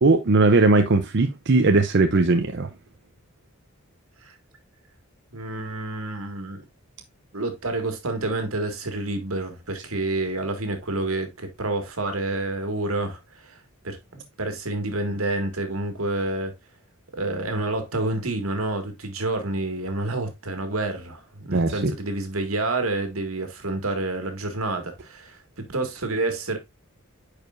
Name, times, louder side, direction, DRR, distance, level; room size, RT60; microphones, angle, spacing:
voice 1, 0.0-2.7 21.5-21.9, right 3 dB, 55° right, 0.7 m, -19 dB
voice 2, 5.3-6.6 7.3-13.6 13.8-16.5 17.1-26.6, right 2 dB, 80° right, 2.0 m, -28 dB
9.3 x 5.0 x 2.5 m
head